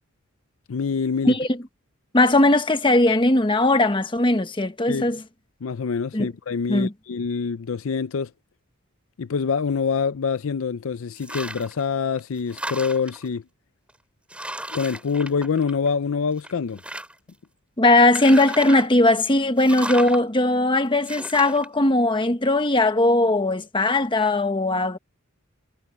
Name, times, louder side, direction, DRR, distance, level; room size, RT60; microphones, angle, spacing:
voice 1, 0.7-1.4 4.9-5.1 5.6-8.3 9.2-13.4 14.7-16.8, left 5 dB, 70° left, 0.5 m, -25 dB
voice 2, 2.1-5.2 6.1-6.3 6.7-6.9 17.8-25.0, left 2 dB, 25° left, 1.2 m, -19 dB
sound 1, 11.2-11.8 12.2-13.3 13.9-14.0 14.3-16.0 16.4-17.3 18.0-18.9 19.6-20.2 21.0-21.7, right 1 dB, 5° right, 4.6 m, -34 dB
head